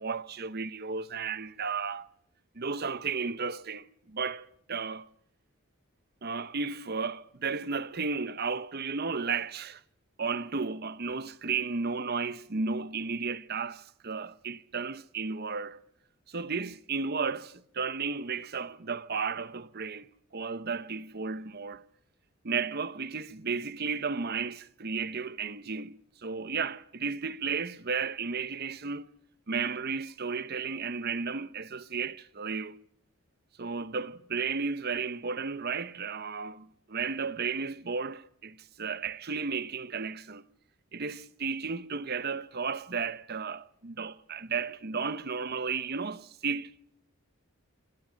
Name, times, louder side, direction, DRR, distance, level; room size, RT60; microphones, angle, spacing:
voice 1, 0.0-2.1 2.5-5.1 6.2-9.8 10.2-15.8 16.3-21.8 22.4-29.1 29.5-32.8 33.6-40.4 40.9-46.9, right 5 dB, 45° right, 0.9 m, -34 dB
27.0 x 25.5 x 5.2 m
head